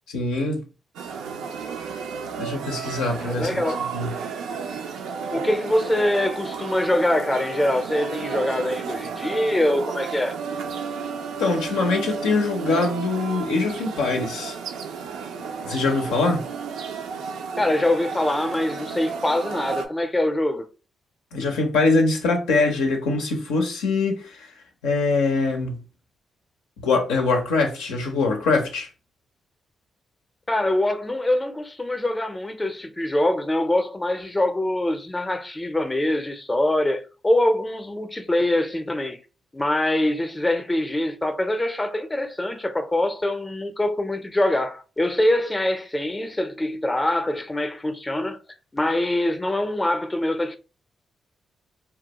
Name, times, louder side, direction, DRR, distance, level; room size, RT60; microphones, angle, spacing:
voice 1, 0.1-0.6 2.4-3.6 3.9-4.1 11.4-14.6 15.6-16.4 21.3-24.5 24.8-25.8 26.8-28.9, left 3 dB, 85° left, 0.5 m, -23 dB
sound 1, 1.0-19.9, right 6 dB, 80° right, 0.3 m, -32 dB
voice 2, 3.2-3.9 5.3-10.4 17.6-20.6 30.5-39.2 39.5-48.4 48.7-50.6, left 1 dB, 20° left, 0.5 m, -24 dB
2.3 x 2.1 x 2.8 m
hypercardioid pair, 45°, 0 cm